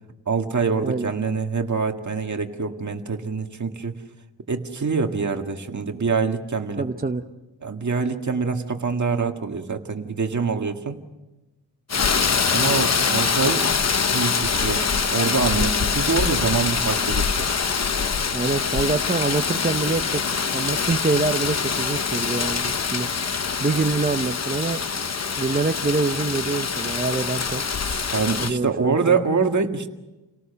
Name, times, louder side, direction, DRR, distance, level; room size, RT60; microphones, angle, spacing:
voice 1, 0.3-4.0 4.5-6.9 7.6-11.0 12.5-13.7 14.1-14.9 15.1-17.5 27.8-29.9, right 5 dB, 40° right, 4 dB, 1.9 m, -25 dB
voice 2, 6.8-7.2 18.3-20.2 20.5-23.1 23.6-24.8 25.4-27.6 28.4-29.2, right 3 dB, 20° right, 5 dB, 0.8 m, -25 dB
Rain, 11.9-28.5, left 5 dB, 35° left, 0.9 m, -24 dB
29.0 x 18.5 x 6.9 m, 1.1 s
wide cardioid pair, 120°, 43 cm